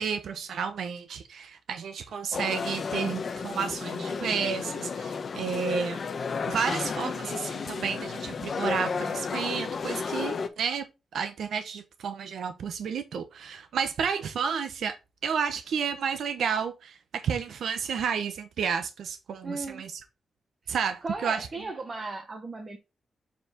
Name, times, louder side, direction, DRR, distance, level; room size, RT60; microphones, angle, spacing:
voice 1, 0.0-6.0 6.5-15.0 15.2-19.9 20.7-21.5, right 6 dB, 90° right, 0.9 m, -31 dB
sound 1, 2.3-10.5, left 5 dB, 45° left, 1.1 m, -32 dB
voice 2, 19.4-19.8 20.7-20.8 21.0-22.8, right 3 dB, 30° right, 1.4 m, -36 dB
7.5 x 4.6 x 3.7 m
wide cardioid pair, 155°, 0 cm